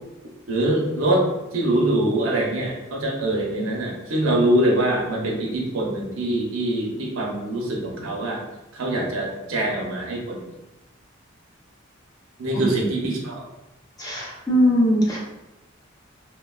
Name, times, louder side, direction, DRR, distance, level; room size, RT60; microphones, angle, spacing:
voice 1, 0.5-1.3 1.5-8.4 8.7-10.4 12.4-13.4, right 1 dB, 85° right, -1 dB, 0.7 m, -23 dB
voice 2, 14.0-15.2, equal, 20° left, -5 dB, 0.6 m, -20 dB
3.3 x 2.2 x 2.2 m, 0.96 s
head